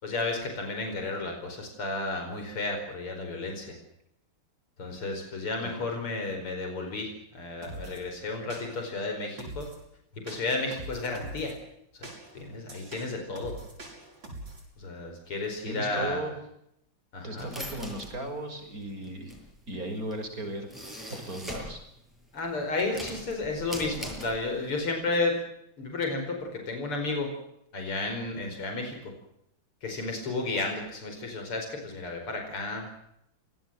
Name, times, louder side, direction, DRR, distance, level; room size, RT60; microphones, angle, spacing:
voice 1, 0.0-3.8 4.8-9.7 10.2-11.6 12.0-12.1 12.3-13.6 14.8-16.2 17.1-17.5 22.3-25.4 25.8-27.3 27.7-29.1 29.8-32.9, left 3 dB, 90° left, 4 dB, 5.7 m, -32 dB
sound 1, 7.6-8.0 8.5-9.0 9.4-9.8 10.3-11.5 12.0-14.7, right 2 dB, 60° right, 8.0 m, -43 dB
voice 2, 15.6-16.3 17.2-19.3 19.7-20.7 21.1-21.8, right 1 dB, 40° right, 5 dB, 6.3 m, -36 dB
sound 2, 17.4-21.8 22.2-24.8, equal, ahead, 7.8 m, -41 dB
26.5 x 19.0 x 7.7 m, 0.76 s
omnidirectional pair, 2.4 m